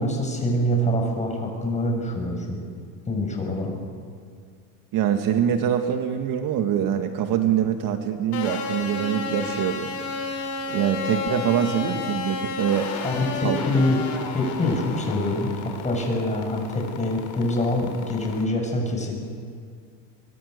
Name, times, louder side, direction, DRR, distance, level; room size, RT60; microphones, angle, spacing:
voice 1, 0.0-2.6 3.1-3.8 13.0-14.0 14.3-19.2, left 1 dB, 15° left, 1 dB, 7.2 m, -25 dB
voice 2, 4.9-10.0 10.7-12.9 13.4-13.6, right 9 dB, 50° right, 6 dB, 2.0 m, -24 dB
sound 1, 8.3-18.4, left 5 dB, 45° left, 4.7 m, -32 dB
25.5 x 24.5 x 6.8 m, 2.2 s
supercardioid pair, 115°, 42 cm